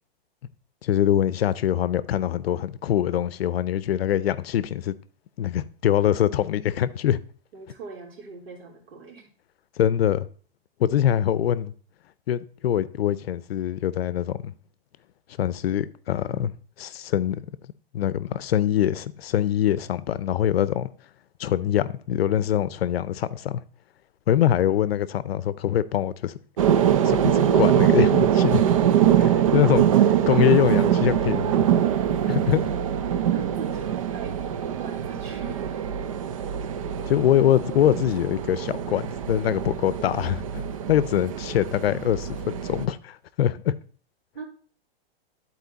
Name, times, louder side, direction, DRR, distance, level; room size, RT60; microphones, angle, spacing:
voice 1, 0.8-4.9 5.4-7.2 9.8-10.3 10.8-11.7 12.3-14.5 15.4-16.5 16.8-17.5 17.9-20.9 21.4-23.6 24.3-26.4 27.0-28.6 29.2-29.9 30.3-31.7 32.3-32.7 37.1-43.8, left 11 dB, 80° left, 0.6 m, -23 dB
voice 2, 7.5-9.3 29.9-30.0 33.3-34.3 34.8-35.6 44.3-44.4, right 5 dB, 85° right, 3.2 m, -39 dB
sound 1, 26.6-42.9, right 10 dB, 35° right, 0.4 m, -23 dB
11.0 x 4.4 x 4.0 m
hypercardioid pair, 170°, 30 cm